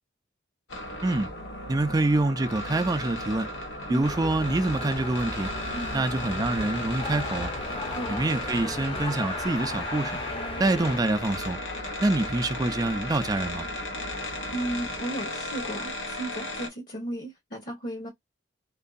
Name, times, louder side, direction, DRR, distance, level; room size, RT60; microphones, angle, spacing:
sound 1, 0.7-16.7, left 1 dB, 90° left, 1.0 m, -35 dB
voice 1, 1.7-3.5 3.9-5.5 5.9-7.5 8.1-10.2 10.6-11.6 12.0-13.7, right 2 dB, 20° right, 0.4 m, -26 dB
sound 2, 4.0-11.0, left 2 dB, 30° left, 0.6 m, -36 dB
voice 2, 5.7-6.0 7.9-8.1 14.5-18.1, right 1 dB, 50° left, 1.0 m, -34 dB
2.9 x 2.6 x 2.4 m
head